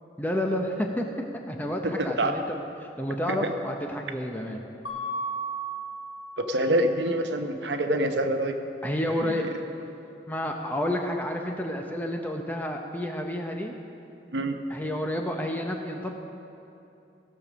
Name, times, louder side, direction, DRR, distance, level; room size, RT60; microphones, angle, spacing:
voice 1, 0.2-1.1 1.5-2.6 3.0-4.6 8.8-9.5 10.3-13.7 14.7-16.1, left 1 dB, 10° left, 2 dB, 0.6 m, -30 dB
voice 2, 1.8-2.4 3.3-3.5 6.4-8.6 9.2-9.4 14.3-14.5, right 1 dB, 85° right, 6 dB, 0.9 m, -26 dB
Mallet percussion, 4.9-6.7, right 2 dB, 90° left, 1.5 m, -34 dB
16.5 x 6.8 x 6.3 m, 2.8 s
head